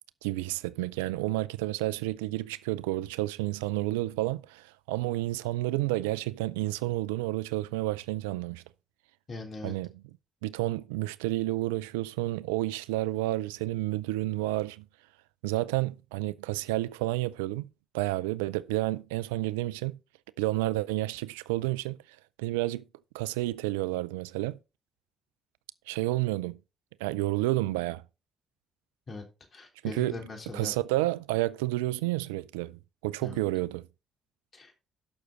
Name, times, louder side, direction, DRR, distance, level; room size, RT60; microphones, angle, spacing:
voice 1, 0.2-8.6 9.6-9.9 10.4-14.8 15.4-17.7 17.9-20.0 20.4-22.0 22.4-22.8 23.1-24.6 25.9-26.6 27.0-28.0 29.8-30.2 30.5-33.8, right 17 dB, 85° right, 0.4 m, -30 dB
voice 2, 9.3-9.8 29.1-29.2 29.5-30.8 33.2-33.4 34.5-34.7, left 3 dB, 50° left, 3.5 m, -40 dB
12.0 x 6.2 x 4.0 m
hypercardioid pair, 45°, 0 cm